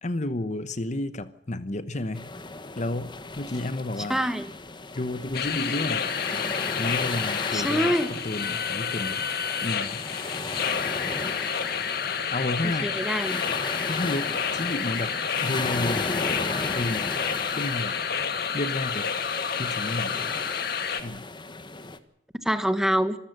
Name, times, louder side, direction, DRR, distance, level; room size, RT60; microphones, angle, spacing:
voice 1, 0.0-2.3 2.8-4.2 4.9-6.1 6.7-7.9 8.2-9.3 9.6-10.0 12.3-12.9 13.9-15.1 15.4-16.1 16.6-17.1 17.5-18.0 18.5-19.1 19.6-20.3 21.0-21.2, left 1 dB, 40° left, 13 dB, 1.0 m, -31 dB
sound 1, 2.1-22.0, left 3 dB, 25° left, 1.4 m, -36 dB
voice 2, 4.1-4.5 7.5-8.1 11.0-11.3 12.8-13.4 22.4-23.2, equal, 5° right, 10 dB, 1.5 m, -25 dB
sound 2, 5.3-21.0, left 7 dB, 60° left, 2.0 m, -29 dB
25.5 x 14.5 x 7.9 m, 0.79 s
head